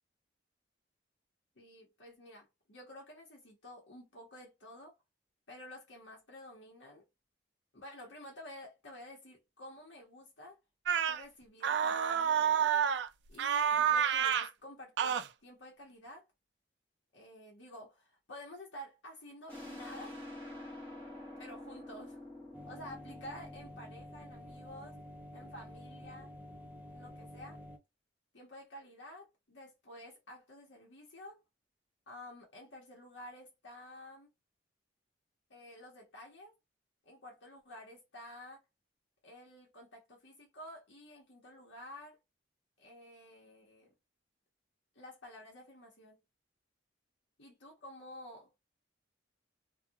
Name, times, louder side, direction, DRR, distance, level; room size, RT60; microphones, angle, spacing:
voice 1, 1.6-4.9 5.5-7.1 7.7-10.6 11.1-12.7 13.3-16.3 17.1-20.5 21.4-22.2 22.7-25.0 25.3-26.3 26.9-27.6 28.3-31.4 32.1-34.3 35.5-36.5 37.0-38.6 39.2-42.2 42.8-43.9 44.9-46.2 47.4-48.5, left 1 dB, 75° left, 1.0 m, -51 dB
sound 1, 10.9-11.2 11.6-13.1 13.4-14.5 15.0-15.3, right 8 dB, 65° right, 0.4 m, -29 dB
sound 2, 19.5-24.8, left 1 dB, 10° left, 1.2 m, -48 dB
sound 3, 22.5-27.8, left 1 dB, 10° right, 0.5 m, -50 dB
2.7 x 2.4 x 2.3 m
head